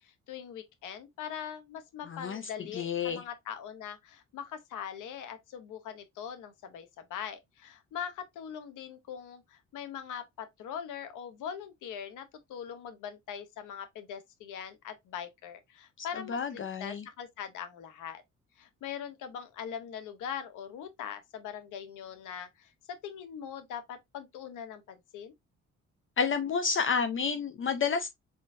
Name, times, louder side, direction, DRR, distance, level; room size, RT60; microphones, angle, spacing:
voice 1, 0.0-18.2 18.6-22.7 23.0-25.3, left 8 dB, 85° left, 0.9 m, -42 dB
voice 2, 2.1-3.2 16.0-17.1 26.2-28.1, left 6 dB, 40° left, 0.6 m, -30 dB
3.9 x 3.7 x 2.5 m
cardioid pair, 90°, 30 cm